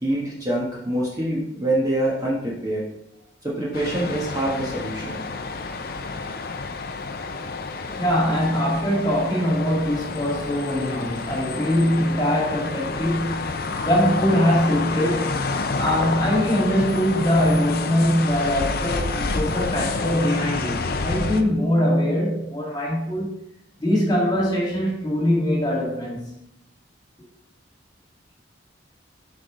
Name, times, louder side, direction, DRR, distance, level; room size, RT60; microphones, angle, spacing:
voice 1, 0.0-2.9 3.4-5.2, right 1 dB, 20° right, 1.3 m, -25 dB
sound 1, 3.7-21.4, left 3 dB, 50° left, 0.6 m, -29 dB
voice 2, 8.0-13.5 13.8-15.4 15.8-23.4 23.8-26.3, equal, 20° left, 2.2 m, -22 dB
8.0 x 4.8 x 3.8 m
head